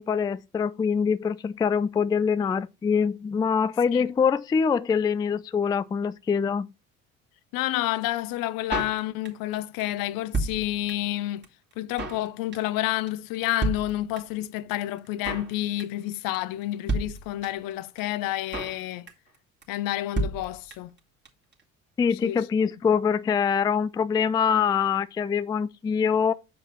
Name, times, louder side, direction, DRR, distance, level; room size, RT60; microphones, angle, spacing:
voice 1, 0.0-6.7 22.0-26.3, left 6 dB, 10° left, 0.3 m, -24 dB
voice 2, 7.5-11.4 11.8-19.1 19.7-20.9 22.2-22.4, left 15 dB, 60° left, 0.7 m, -29 dB
Drum kit, 8.7-9.5 9.8-9.9 10.1-11.2 11.4-11.5 11.7-12.3 12.5-12.8 13.1-13.2 13.3-13.4 13.6-14.4 14.7-14.8 15.0-15.5 15.8-16.1 16.3-16.4 16.6-16.7 16.9-17.7 18.0-18.1 18.2-18.8 19.1-19.3 19.6-19.7 19.9-20.0 20.1-21.0 21.2-21.3 21.5-21.6, right 3 dB, 25° right, 2.2 m, -31 dB
6.6 x 5.1 x 4.4 m
hypercardioid pair, 60°, 39 cm